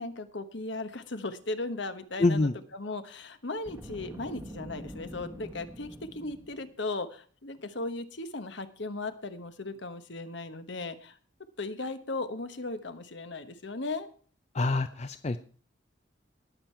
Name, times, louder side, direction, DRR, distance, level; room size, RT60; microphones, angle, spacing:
voice 1, 0.0-11.2 11.6-14.1, left 2 dB, 60° left, 10 dB, 1.2 m, -37 dB
voice 2, 2.2-2.5 14.5-15.4, left 2 dB, 35° left, 10 dB, 0.5 m, -26 dB
Boom, 3.6-6.7, equal, 10° right, 1.1 m, -44 dB
19.5 x 7.4 x 4.5 m, 0.43 s
head